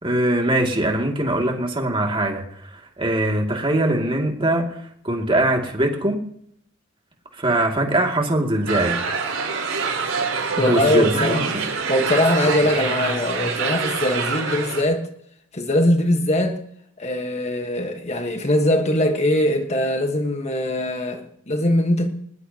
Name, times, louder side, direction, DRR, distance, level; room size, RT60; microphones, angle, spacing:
voice 1, 0.0-2.4 3.0-4.8 5.0-6.2 7.4-9.0 10.6-11.4, right 1 dB, 25° right, 2.6 m, -21 dB
sound 1, 8.7-14.8, right 5 dB, 85° right, 4.5 m, -25 dB
voice 2, 10.6-11.5 11.9-15.1 15.5-16.6 17.0-22.1, left 1 dB, 30° left, 1.5 m, -21 dB
20.5 x 19.5 x 3.0 m
head